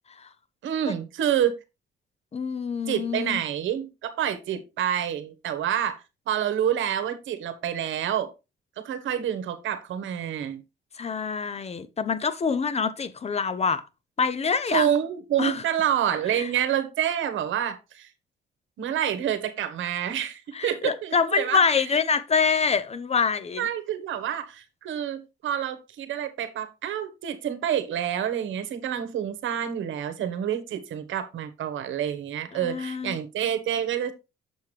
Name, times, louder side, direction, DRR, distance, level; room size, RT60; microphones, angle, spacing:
voice 1, 0.6-1.6 2.9-8.3 8.8-10.6 14.7-18.1 18.8-21.6 23.6-34.1, right 10 dB, 75° right, 1.2 m, -28 dB
voice 2, 2.3-3.4 10.9-13.8 14.2-14.9 15.4-15.6 16.3-16.5 20.5-23.7 32.5-33.2, left 5 dB, 30° left, 0.7 m, -26 dB
7.1 x 5.7 x 3.2 m
cardioid pair, 90°, 20 cm